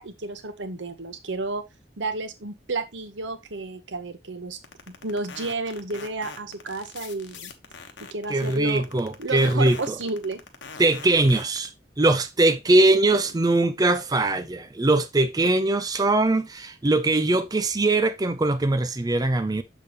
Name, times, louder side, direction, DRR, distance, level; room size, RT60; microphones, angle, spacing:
voice 1, 0.0-1.6 2.0-4.6 4.9-7.5 8.1-8.8 9.2-10.4, right 3 dB, 85° right, 1.2 m, -31 dB
sound 1, 4.6-11.7, left 5 dB, 90° left, 1.3 m, -42 dB
voice 2, 8.3-9.9 10.8-11.7 12.0-19.6, right 2 dB, 20° right, 0.5 m, -21 dB
7.0 x 6.7 x 3.0 m
head